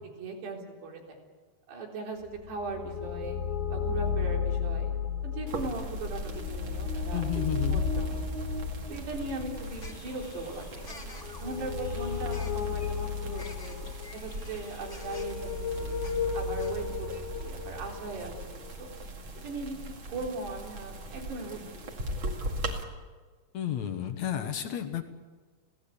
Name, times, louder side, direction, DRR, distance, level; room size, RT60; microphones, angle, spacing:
voice 1, 0.2-1.2 1.7-3.4 3.7-4.9 5.2-8.2 8.9-11.1 11.4-13.8 14.1-15.5 15.8-16.0 16.3-17.1 17.4-18.9 19.4-19.8 20.1-21.6, right 3 dB, 75° right, 1 dB, 5.9 m, -39 dB
sound 1, 2.3-19.0, left 5 dB, 85° left, 5.9 m, -34 dB
sound 2, 5.5-22.8, right 1 dB, 40° right, 2.2 m, -40 dB
voice 2, 7.1-7.8 23.5-25.1, left 10 dB, 65° left, 8 dB, 1.9 m, -32 dB
sound 3, 9.5-16.8, left 3 dB, 20° left, 2.1 m, -51 dB
28.0 x 17.5 x 8.6 m, 1.4 s
omnidirectional pair, 4.9 m